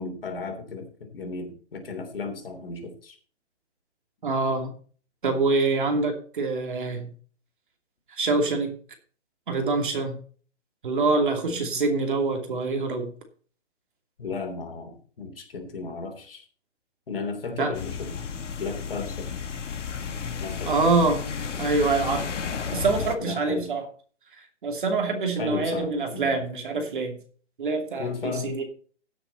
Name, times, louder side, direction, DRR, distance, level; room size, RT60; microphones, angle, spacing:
voice 1, 0.0-3.2 11.7-11.8 14.2-16.4 17.1-18.1 18.5-19.3 20.4-20.8 23.2-23.7 25.4-26.4 28.0-28.5, left 4 dB, 50° left, 5 dB, 3.4 m, -34 dB
voice 2, 4.2-4.7 5.2-7.1 8.1-8.7 9.5-10.2 10.8-13.1 17.6-17.7 20.6-21.2 21.6-22.3 22.7-23.8 24.6-27.2 27.6-28.6, right 3 dB, 45° right, 4 dB, 2.7 m, -25 dB
sound 1, 17.7-23.2, left 6 dB, 80° left, 1.6 m, -33 dB
16.0 x 7.0 x 4.2 m, 0.43 s
hypercardioid pair, 175°, 36 cm